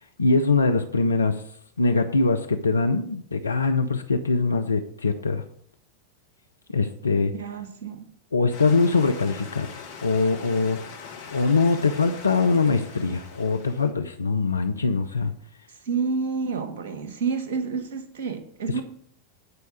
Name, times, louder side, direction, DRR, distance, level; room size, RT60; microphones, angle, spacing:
voice 1, 0.2-1.4 1.8-5.4 6.7-7.3 8.3-9.7 10.0-10.8 11.3-15.3 18.7-18.8, left 3 dB, 75° left, 6 dB, 0.6 m, -22 dB
voice 2, 7.3-8.0 15.8-18.8, right 5 dB, 55° right, 5 dB, 1.6 m, -29 dB
sound 1, 8.5-13.9, left 6 dB, 50° left, 2.1 m, -42 dB
9.7 x 4.7 x 7.7 m, 0.63 s
figure-of-eight pair, 90°, 0 cm